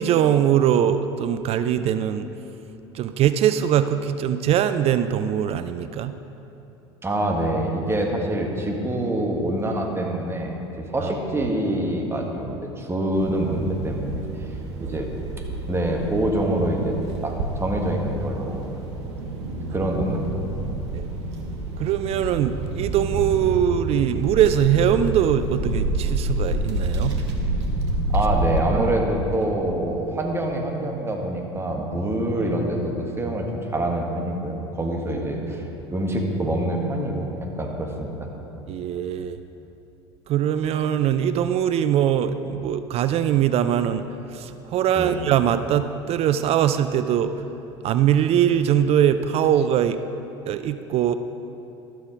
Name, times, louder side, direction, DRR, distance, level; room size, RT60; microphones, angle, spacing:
voice 1, 0.0-2.3 2.9-6.2 11.0-11.1 14.8-15.0 20.9-21.1 21.8-27.2 28.7-28.9 38.7-39.4 40.3-47.4 47.8-50.0 50.5-51.1, right 10 dB, 45° right, 11 dB, 0.4 m, -22 dB
voice 2, 7.0-14.2 14.8-15.1 15.7-17.0 17.2-18.6 19.7-20.7 28.1-33.5 33.7-35.6 35.9-38.3 45.0-45.2, right 1 dB, 20° right, 1 dB, 1.7 m, -25 dB
sound 1, 13.1-28.6, right 2 dB, 75° right, 1.3 m, -28 dB
12.5 x 7.6 x 5.2 m, 2.9 s
hypercardioid pair, 75°, 14 cm